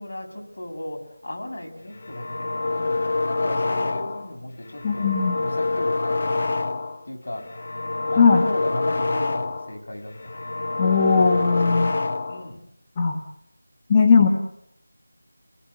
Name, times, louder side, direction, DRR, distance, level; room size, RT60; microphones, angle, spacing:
voice 1, 0.0-5.1 5.4-6.4 7.0-7.5 8.1-11.3 11.7-12.0 12.3-12.6, left 1 dB, 55° left, 4 dB, 6.2 m, -36 dB
sound 1, 1.9-4.3 4.7-7.0 7.4-9.8 10.1-12.5, left 3 dB, 40° left, 1.3 m, -26 dB
voice 2, 4.8-5.4 8.2-8.5 10.8-11.9 13.0-13.2 13.9-14.3, left 5 dB, 20° left, 2 dB, 1.4 m, -18 dB
27.5 x 19.5 x 9.6 m, 0.84 s
figure-of-eight pair, 175°, 0 cm